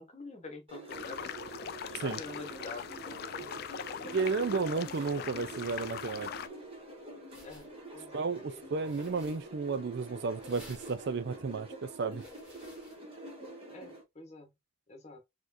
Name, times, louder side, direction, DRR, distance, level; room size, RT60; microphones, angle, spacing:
voice 1, 0.0-3.6 3.9-4.4 7.4-8.9 13.7-14.5 14.9-15.2, left 3 dB, 35° left, 1.0 m, -48 dB
sound 1, 0.7-14.0, right 2 dB, 30° right, 1.3 m, -46 dB
sound 2, 0.9-6.5, left 8 dB, 50° left, 0.3 m, -42 dB
voice 2, 4.1-6.4 8.1-12.2, right 4 dB, 55° right, 0.5 m, -33 dB
sound 3, 4.4-13.0, equal, 5° right, 2.1 m, -59 dB
4.3 x 3.0 x 2.6 m
head